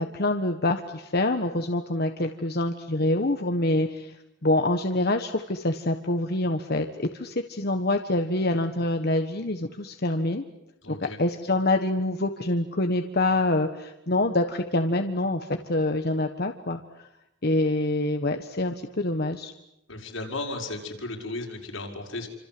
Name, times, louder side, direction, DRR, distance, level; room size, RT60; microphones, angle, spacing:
voice 1, 0.0-4.1 4.4-10.4 10.9-17.1 17.4-19.5, left 2 dB, 55° left, 5 dB, 1.5 m, -26 dB
voice 2, 10.8-11.2 19.9-22.3, left 2 dB, 85° left, 1 dB, 6.1 m, -35 dB
28.5 x 27.0 x 7.9 m, 0.85 s
head